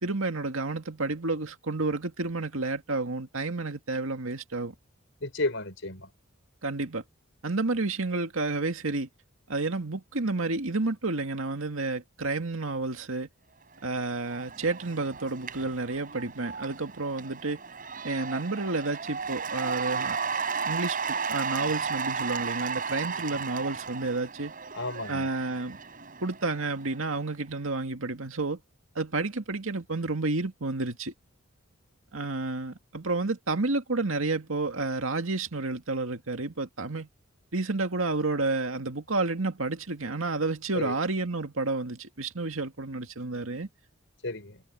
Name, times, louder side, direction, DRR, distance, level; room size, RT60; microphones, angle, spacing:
voice 1, 0.0-4.7 6.6-7.0 7.4-9.1 9.5-13.3 13.8-17.6 18.0-20.2 20.6-24.5 25.1-25.8 26.2-28.6 29.0-31.1 32.1-37.1 37.5-43.7, right 3 dB, 75° right, 2.1 m, -30 dB
voice 2, 5.2-6.1 24.7-25.3 40.7-40.9 44.2-44.6, left 2 dB, 60° left, 6.5 m, -32 dB
Cheering / Applause / Crowd, 13.7-27.2, right 5 dB, 40° right, 7.7 m, -34 dB
head